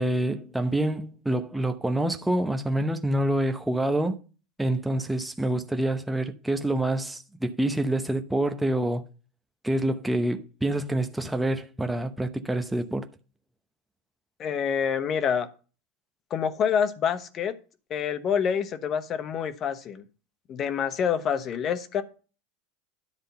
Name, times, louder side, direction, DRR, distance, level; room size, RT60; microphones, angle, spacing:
voice 1, 0.0-4.2 4.6-9.0 9.6-13.1, right 1 dB, 5° right, 0.8 m, -27 dB
voice 2, 14.4-15.5 16.3-17.5 17.9-20.0 20.5-22.0, left 7 dB, 40° left, 1.0 m, -27 dB
10.5 x 3.8 x 6.9 m
supercardioid pair, 110°, 0 cm